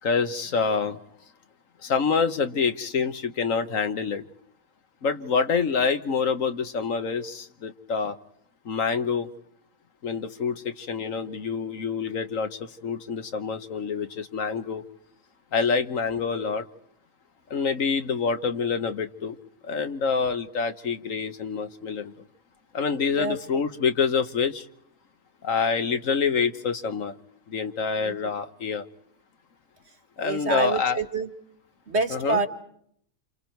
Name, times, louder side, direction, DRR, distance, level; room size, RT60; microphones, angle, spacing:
voice 1, 0.0-1.0 1.8-4.2 5.0-8.2 8.6-9.3 10.0-14.8 15.5-16.6 17.5-19.4 19.6-22.1 22.7-24.7 25.4-27.1 27.5-28.8 30.2-31.0 32.1-32.4, left 5 dB, 70° left, 9 dB, 1.6 m, -26 dB
voice 2, 23.2-23.6 28.0-28.3 30.2-31.3 31.9-32.5, right 3 dB, 50° right, 5 dB, 2.1 m, -28 dB
28.5 x 28.0 x 4.6 m, 0.68 s
omnidirectional pair, 1.4 m